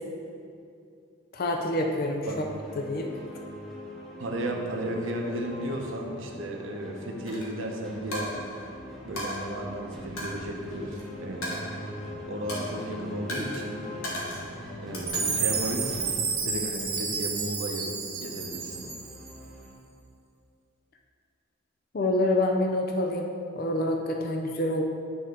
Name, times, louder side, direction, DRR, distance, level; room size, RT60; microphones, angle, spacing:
voice 1, 1.3-2.2 2.8-3.1 21.9-24.8, left 1 dB, 45° left, 2 dB, 0.5 m, -27 dB
sound 1, 2.4-19.7, left 1 dB, ahead, 0.9 m, -42 dB
voice 2, 4.2-8.4 9.0-11.6 12.3-13.8 14.8-16.1 16.4-17.9 18.2-18.9, right 1 dB, 65° right, 2 dB, 0.8 m, -34 dB
Coin (dropping), 7.3-7.5 8.1-8.7 9.2-9.4 10.2-11.0 11.4-12.1 12.5-12.8 13.3-13.6 14.0-14.5 14.9-15.6, left 1 dB, 85° left, 1.5 m, -36 dB
Chime, 15.1-19.3, right 5 dB, 90° right, 1.1 m, -31 dB
9.4 x 4.1 x 3.7 m, 2.5 s
head